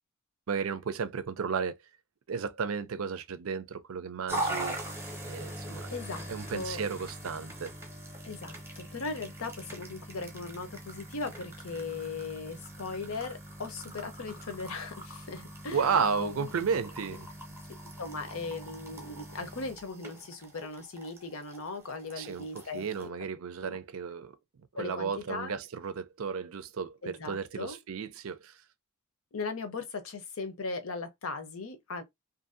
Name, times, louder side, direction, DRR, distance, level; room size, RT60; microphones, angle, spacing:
voice 1, 0.5-1.8 2.3-4.8 5.2-5.9 6.3-7.7 15.7-17.3 22.2-24.3 24.7-28.6, right 6 dB, 70° right, 0.5 m, -33 dB
sound 1, 4.3-23.1, right 1 dB, 10° right, 0.7 m, -42 dB
voice 2, 5.9-6.8 8.2-16.5 18.0-23.1 23.6-23.8 24.8-25.6 27.0-27.8 29.3-32.0, left 3 dB, 70° left, 0.7 m, -38 dB
2.6 x 2.6 x 2.5 m
head